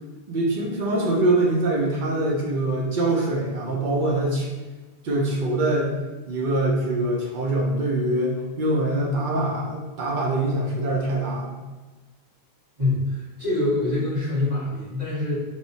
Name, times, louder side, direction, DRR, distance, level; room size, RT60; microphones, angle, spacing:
voice 1, 0.3-4.5 5.0-5.9 6.3-11.5, right 2 dB, 60° right, -2 dB, 0.6 m, -24 dB
voice 2, 12.8-15.3, left 2 dB, 40° right, -14 dB, 1.5 m, -25 dB
3.1 x 2.0 x 2.6 m, 1.2 s
omnidirectional pair, 1.0 m